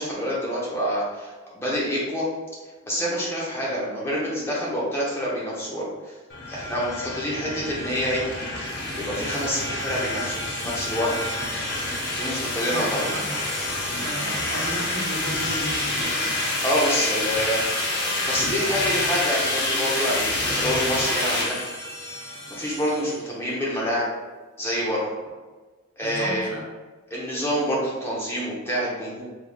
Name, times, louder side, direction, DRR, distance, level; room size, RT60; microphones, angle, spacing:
voice 1, 0.0-2.3 2.9-6.1 6.5-8.2 8.5-8.7 8.9-11.3 12.2-13.1 16.6-17.6 18.3-21.6 22.5-24.1 24.6-25.0 26.0-26.5 27.1-29.2, equal, 10° left, -6 dB, 0.7 m, -27 dB
sound 1, 6.3-23.1, left 2 dB, 50° left, 0.7 m, -28 dB
voice 2, 12.4-13.4 14.0-16.0 20.5-20.7 26.0-26.7, equal, 80° right, -2 dB, 0.9 m, -34 dB
3.6 x 3.2 x 2.4 m, 1.3 s
head